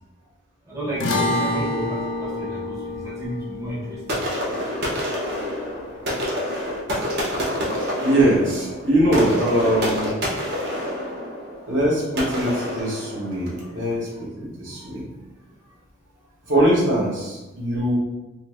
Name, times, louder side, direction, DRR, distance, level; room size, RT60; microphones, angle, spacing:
voice 1, 0.7-4.2 7.3-7.5 9.2-9.4 14.7-14.9, right 1 dB, 15° right, -8 dB, 0.6 m, -32 dB
sound 1, 1.0-7.5, left 2 dB, 70° left, 0.4 m, -29 dB
sound 2, 4.1-13.7, equal, 55° right, 0.6 m, -27 dB
voice 2, 8.0-10.1 11.1-11.3 11.7-14.1 14.4-15.1 16.5-18.0, right 1 dB, 75° right, -6 dB, 1.1 m, -22 dB
2.5 x 2.4 x 3.3 m, 1.1 s
head